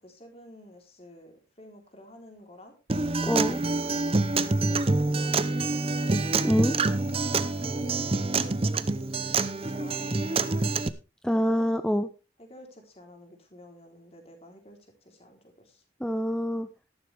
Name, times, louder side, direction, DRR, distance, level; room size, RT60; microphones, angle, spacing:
voice 1, 0.0-2.8 4.6-6.1 7.4-8.5 9.2-10.8 11.3-11.7 12.4-15.8, equal, 35° left, 3 dB, 3.5 m, -50 dB
Acoustic guitar, 2.9-10.9, right 3 dB, 30° right, 0.7 m, -26 dB
voice 2, 3.2-3.6 6.4-6.8 11.2-12.1 16.0-16.7, equal, 5° left, 9 dB, 0.5 m, -25 dB
13.0 x 12.0 x 3.4 m, 0.30 s
head